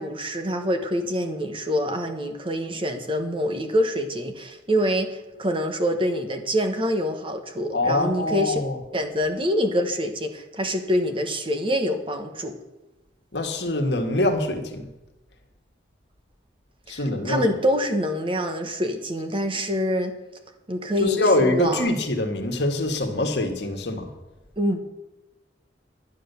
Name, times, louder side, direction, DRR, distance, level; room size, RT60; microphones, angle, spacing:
voice 1, 0.0-8.6 8.9-12.6 16.9-17.0 17.2-20.2 20.7-21.9 24.6-24.8, equal, 30° right, 6 dB, 1.3 m, -25 dB
voice 2, 7.7-8.8 13.3-14.9 16.9-17.4 21.0-24.1, left 1 dB, 65° left, 4 dB, 1.7 m, -24 dB
11.0 x 10.0 x 6.9 m, 0.98 s
head